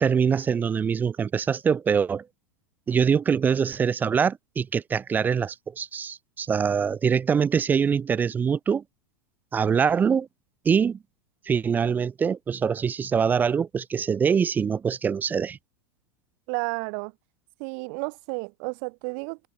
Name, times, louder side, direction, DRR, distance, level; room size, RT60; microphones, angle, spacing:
voice 1, 0.0-2.3 2.9-8.8 9.5-10.3 10.7-11.0 11.5-15.6, right 6 dB, 10° right, 0.4 m, -24 dB
voice 2, 16.5-17.1 17.6-19.4, right 40 dB or more, 45° right, 1.2 m, -32 dB
supercardioid pair, 155°, 14 cm